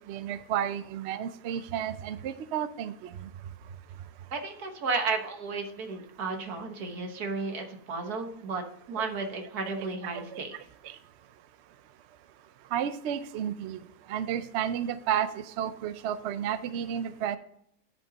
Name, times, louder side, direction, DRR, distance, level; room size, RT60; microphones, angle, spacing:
voice 1, 0.1-3.3 10.0-10.4 10.8-10.9 12.7-13.8 14.1-17.4, right 9 dB, 65° right, 13 dB, 0.7 m, -32 dB
voice 2, 4.3-10.5, right 4 dB, 90° right, 5 dB, 1.8 m, -33 dB
11.0 x 5.2 x 3.9 m, 0.71 s
omnidirectional pair, 1.6 m